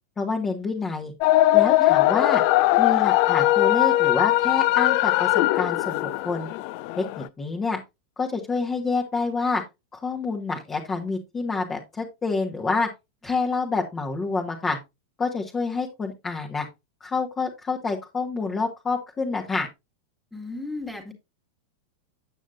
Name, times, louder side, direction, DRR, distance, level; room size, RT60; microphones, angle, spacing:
voice 1, 0.2-1.1 1.5-2.4 2.8-6.5 7.0-7.8 8.2-9.6 9.9-12.9 13.2-14.8 15.2-16.6 17.0-19.7, left 4 dB, 20° left, 0 dB, 1.4 m, -27 dB
sound 1, 1.2-7.3, left 16 dB, 45° left, 0.4 m, -20 dB
voice 2, 1.8-2.1 13.2-13.4 20.3-21.1, left 2 dB, ahead, 2 dB, 1.9 m, -36 dB
8.9 x 7.5 x 2.5 m, 0.23 s
figure-of-eight pair, 90°, 0 cm